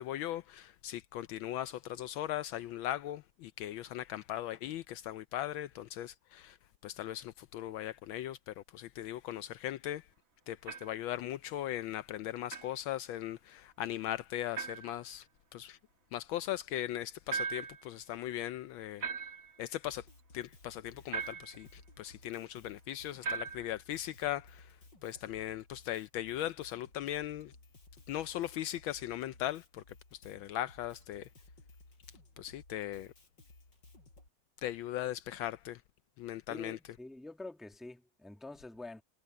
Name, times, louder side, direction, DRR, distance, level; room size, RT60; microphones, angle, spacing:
voice 1, 0.0-6.6 6.8-10.1 10.5-15.3 15.5-15.8 16.1-19.0 19.6-20.1 20.3-24.8 25.0-27.5 28.1-29.8 30.1-31.3 32.4-33.1 34.6-35.8 36.2-36.8, left 12 dB, 75° left, 1.3 m, -39 dB
sound 1, 10.7-11.0 12.5-12.7 14.5-15.0 17.3-17.9 19.0-19.6 21.1-21.6 23.2-23.8, right 5 dB, 45° right, 1.8 m, -38 dB
Drum kit, 19.9-34.3, left 2 dB, 55° left, 7.1 m, -58 dB
voice 2, 36.5-39.0, left 2 dB, ahead, 1.3 m, -47 dB
omnidirectional pair, 2.3 m